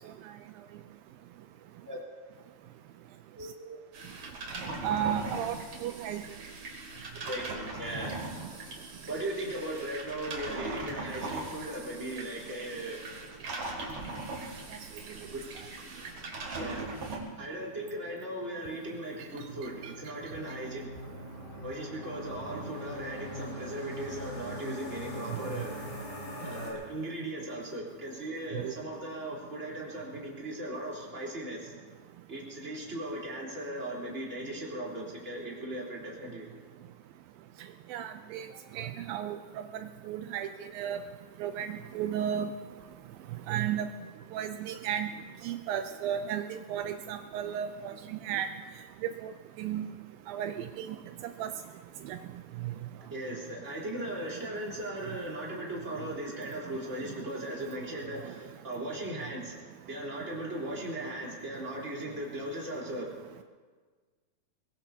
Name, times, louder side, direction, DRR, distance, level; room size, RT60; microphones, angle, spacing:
voice 1, 3.4-3.8 7.2-8.1 9.1-13.2 15.3-15.4 16.6-16.9 17.4-20.9 21.6-25.7 26.4-31.7 32.3-36.5 53.1-59.6 59.8-63.1, right 1 dB, 15° right, -4 dB, 3.7 m, -38 dB
sound 1, 3.9-17.2, right 2 dB, 45° right, 3.2 m, -40 dB
voice 2, 4.8-5.6 5.8-6.2 19.8-19.9 28.6-28.7 37.9-38.5 38.8-39.4 40.1-41.0 41.4-42.5 43.5-43.9 44.3-45.1 45.4-48.5 49.0-49.3 49.6-49.9 50.3-51.0 51.4-51.5 52.1-52.2, right 9 dB, 85° right, 8 dB, 2.0 m, -33 dB
sound 2, 18.8-26.7, equal, 50° left, 6.6 m, -42 dB
23.0 x 21.5 x 2.8 m, 1.5 s
omnidirectional pair, 4.7 m